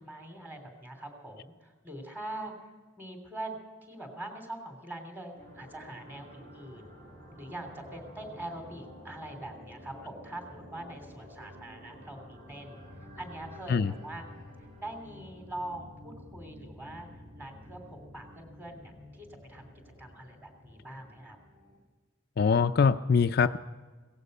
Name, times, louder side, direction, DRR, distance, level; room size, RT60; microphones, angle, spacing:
voice 1, 0.0-2.7 3.0-6.9 7.3-14.2 14.8-17.1 17.3-19.7 20.0-21.4, right 1 dB, 10° right, 4 dB, 3.0 m, -43 dB
sound 1, 5.4-21.8, left 1 dB, 40° right, 6.7 m, -50 dB
voice 2, 22.4-23.6, left 5 dB, 50° left, 9 dB, 0.4 m, -23 dB
17.5 x 15.0 x 5.4 m, 1.4 s
head